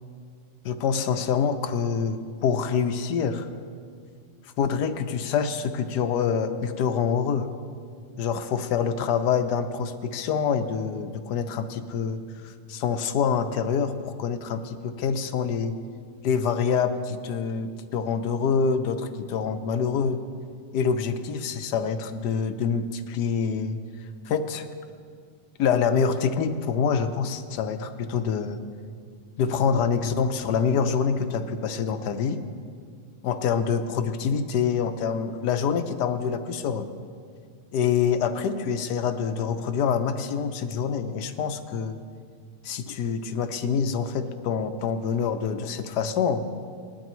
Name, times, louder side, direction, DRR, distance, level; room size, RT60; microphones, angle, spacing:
voice 1, 0.6-3.5 4.6-7.5 8.2-15.7 16.2-20.2 20.7-23.8 24.3-24.7 25.6-28.6 29.4-32.4 33.2-36.9 37.7-42.0 42.6-46.4, left 6 dB, 85° left, 9 dB, 1.3 m, -26 dB
20.0 x 11.5 x 3.1 m, 2.2 s
omnidirectional pair, 1.7 m